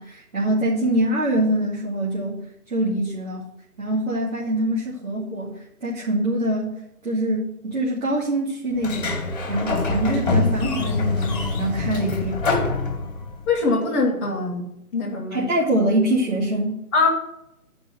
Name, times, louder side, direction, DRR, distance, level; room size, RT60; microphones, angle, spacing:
voice 1, 0.0-2.4 2.7-3.5 3.8-6.7 7.0-9.2 9.5-12.4 15.3-16.8, right 1 dB, 65° right, -7 dB, 2.7 m, -24 dB
Sliding door, 8.8-13.5, left 3 dB, 35° left, 1.8 m, -24 dB
voice 2, 13.5-14.6 14.9-15.4 16.9-17.1, left 3 dB, 10° left, -8 dB, 1.0 m, -22 dB
8.8 x 5.3 x 7.6 m, 0.82 s
figure-of-eight pair, 140°, 45 cm